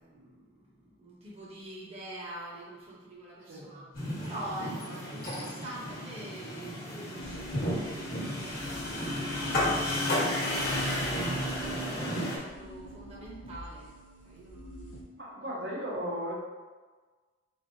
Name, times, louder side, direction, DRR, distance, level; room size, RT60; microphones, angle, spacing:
voice 1, 0.0-3.9 4.2-10.2 10.7-13.9 14.2-15.0, right 1 dB, 35° right, -6 dB, 0.8 m, -45 dB
sound 1, 3.9-12.4, left 1 dB, 55° left, 1.1 m, -32 dB
sound 2, 7.2-15.0, equal, 70° left, 0.6 m, -47 dB
voice 2, 15.2-16.3, equal, 85° right, -7 dB, 1.3 m, -35 dB
4.0 x 3.3 x 2.6 m, 1.4 s
head